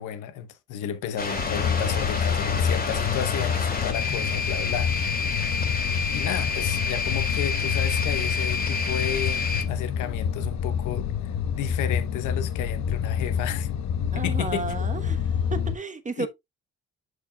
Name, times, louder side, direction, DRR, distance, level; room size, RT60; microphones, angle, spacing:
voice 1, 0.0-5.5 6.1-13.7 14.1-14.6 16.2-16.3, left 9 dB, 85° left, 0.9 m, -33 dB
sound 1, 1.2-9.6, left 4 dB, 30° left, 2.3 m, -29 dB
sound 2, 1.4-15.8, left 8 dB, 65° left, 1.0 m, -28 dB
voice 2, 14.1-16.3, right 4 dB, 25° right, 1.0 m, -33 dB
10.5 x 5.0 x 2.3 m
cardioid pair, 90°, 30 cm